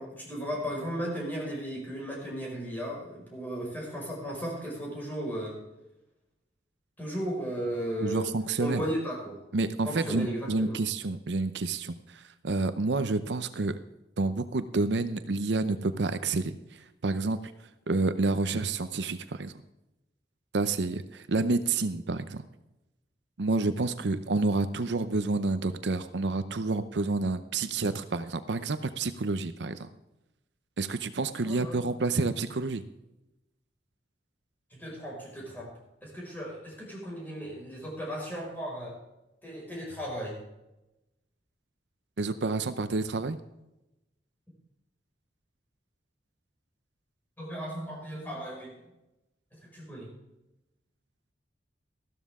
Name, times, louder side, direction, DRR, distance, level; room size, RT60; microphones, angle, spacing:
voice 1, 0.0-5.6 7.0-8.3 8.6-9.4 9.8-10.8 31.4-31.8 34.7-35.7 36.0-39.0 39.4-40.4 47.4-48.8 49.7-50.1, equal, 10° left, -4 dB, 5.4 m, -35 dB
voice 2, 8.0-8.8 9.5-13.8 14.2-17.4 17.9-19.5 20.5-22.4 23.4-29.9 30.8-32.8 42.2-43.4, right 3 dB, 75° right, 12 dB, 0.7 m, -29 dB
14.5 x 12.5 x 3.7 m, 0.94 s
head